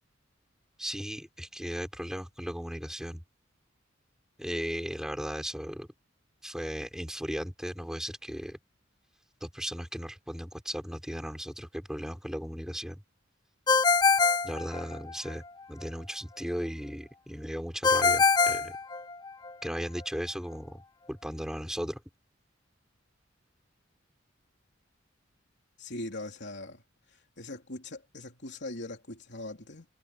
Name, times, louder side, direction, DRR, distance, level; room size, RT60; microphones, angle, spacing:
voice 1, 0.8-3.2 4.4-5.9 6.4-8.6 9.4-13.0 14.4-18.8 19.6-20.8 21.1-22.0, equal, 5° right, 5.2 m, -36 dB
Ringtone, 13.7-15.3 17.8-19.5, left 4 dB, 20° left, 0.7 m, -24 dB
voice 2, 25.8-26.8 27.4-29.9, left 2 dB, 65° left, 3.6 m, -40 dB
head